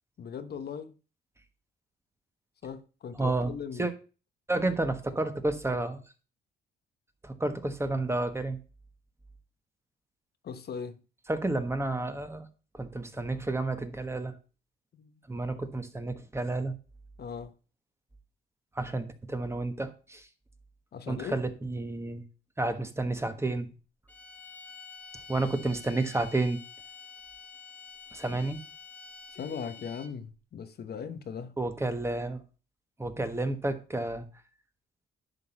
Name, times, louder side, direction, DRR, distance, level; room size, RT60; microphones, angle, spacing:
voice 1, 0.2-0.9 2.6-3.9 10.4-11.0 14.9-15.1 17.2-17.5 20.9-21.4 28.3-28.4 29.3-31.6, left 6 dB, 55° left, 0.9 m, -39 dB
voice 2, 3.1-3.9 4.5-6.0 7.2-8.6 11.3-12.5 12.7-14.4 15.3-16.7 18.7-20.3 21.1-22.2 22.6-23.7 25.3-26.6 28.1-28.6 31.6-32.4 33.0-34.3, right 2 dB, 15° right, 1.3 m, -31 dB
sound 1, 24.1-30.3, left 5 dB, 10° left, 1.1 m, -48 dB
11.0 x 3.8 x 7.2 m
cardioid pair, 90°, 20 cm